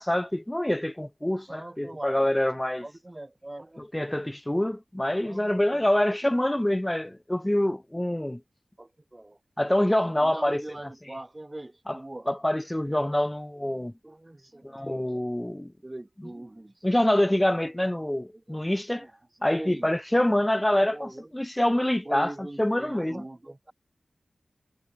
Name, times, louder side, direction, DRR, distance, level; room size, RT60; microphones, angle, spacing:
voice 1, 0.0-2.9 3.8-8.4 9.6-11.1 11.9-13.9 14.6-15.7 16.2-16.3 16.8-19.1 19.4-23.2, left 1 dB, 10° left, 0.5 m, -26 dB
voice 2, 1.5-2.2 2.8-4.1 5.2-5.8 8.8-9.4 10.2-12.3 14.0-15.0 15.8-16.7 18.5-18.6 18.9-19.1 19.6-19.9 20.9-21.2 22.0-23.7, right 1 dB, 20° right, 6.3 m, -42 dB
wide cardioid pair, 100°, 0 cm